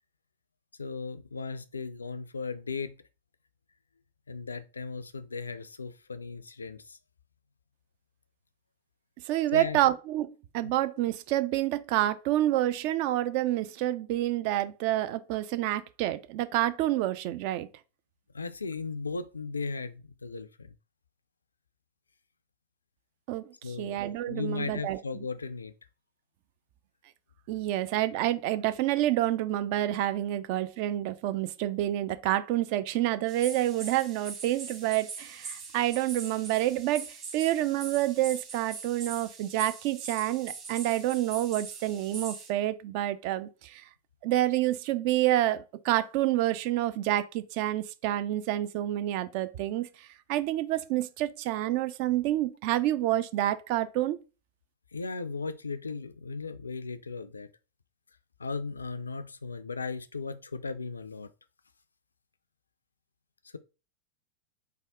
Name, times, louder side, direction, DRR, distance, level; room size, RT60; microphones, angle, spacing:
voice 1, 0.8-3.0 4.3-7.0 9.5-9.8 10.6-10.7 18.3-20.7 23.6-24.0 24.3-25.7 54.9-57.5 58.4-61.3, left 4 dB, 75° left, 0.3 m, -36 dB
voice 2, 9.3-17.7 23.3-25.2 27.5-43.8 44.2-54.2, right 14 dB, 45° right, 0.3 m, -28 dB
sound 1, 33.3-42.5, right 5 dB, 30° right, 1.4 m, -42 dB
3.4 x 2.2 x 3.5 m
figure-of-eight pair, 90°, 0 cm